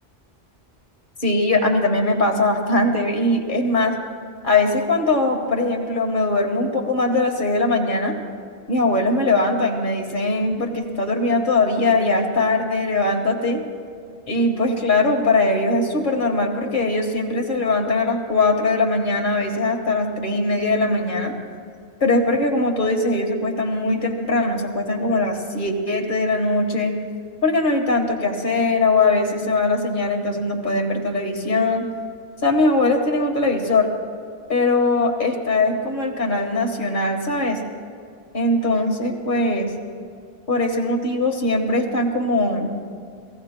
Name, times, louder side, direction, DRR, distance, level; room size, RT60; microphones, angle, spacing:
voice 1, 1.2-3.9 4.4-8.1 8.7-13.6 14.3-21.3 22.0-26.9 27.4-31.9 32.4-33.9 34.5-37.6 38.3-39.7 40.5-42.7, left 2 dB, 50° left, 2 dB, 1.6 m, -21 dB
27.5 x 18.0 x 2.2 m, 2.2 s
omnidirectional pair, 1.1 m